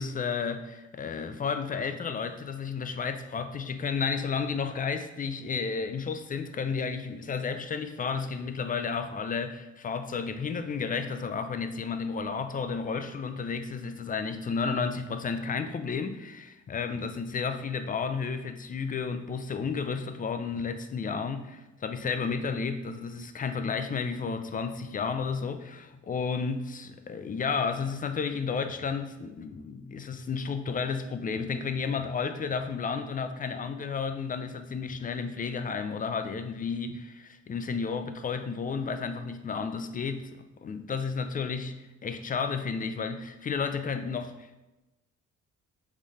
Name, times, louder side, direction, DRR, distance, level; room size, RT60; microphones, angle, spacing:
voice 1, 0.0-41.7 42.0-44.6, left 5 dB, 30° left, 8 dB, 0.4 m, -32 dB
4.0 x 3.1 x 4.0 m, 1.0 s
cardioid pair, 90°, 30 cm